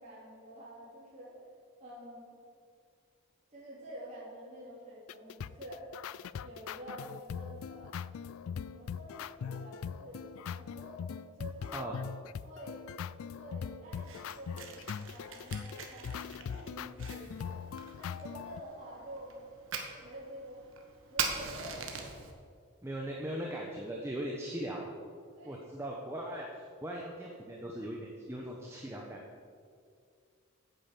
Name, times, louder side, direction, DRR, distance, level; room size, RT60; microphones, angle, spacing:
voice 1, 0.0-1.4 1.8-2.4 3.5-5.9 6.4-8.0 8.4-11.0 11.3-11.9 12.4-12.8 13.3-17.6 18.0-19.4 19.9-20.7 21.1-22.0 25.3-25.6, right 1 dB, 30° right, -9 dB, 3.3 m, -48 dB
sound 1, 5.1-18.6, left 7 dB, 70° left, 0.3 m, -41 dB
Fire, 13.9-22.3, right 6 dB, 60° right, 1.5 m, -42 dB
voice 2, 22.8-24.9 25.4-29.2, right 1 dB, 10° right, -1 dB, 1.1 m, -39 dB
10.0 x 8.8 x 7.5 m, 2.2 s
head